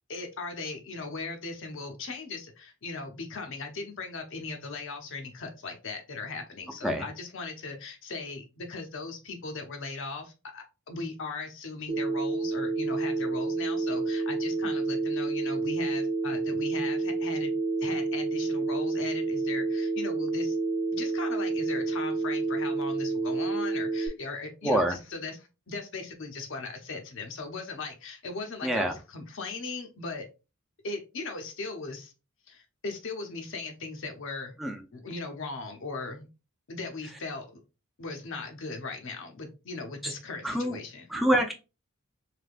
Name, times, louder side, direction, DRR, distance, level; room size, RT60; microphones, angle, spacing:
voice 1, 0.1-17.5 17.8-20.6 20.9-30.3 30.8-32.1 32.5-34.6 34.9-36.3 36.7-37.5 38.0-41.1, left 3 dB, 60° left, 5 dB, 0.7 m, -38 dB
Telephone, 11.9-24.1, right 3 dB, 45° right, 0.7 m, -29 dB
voice 2, 24.6-25.0 28.6-28.9 34.6-34.8 40.4-40.8 41.1-41.5, equal, ahead, 2 dB, 0.4 m, -25 dB
3.3 x 2.7 x 2.4 m, 0.29 s
head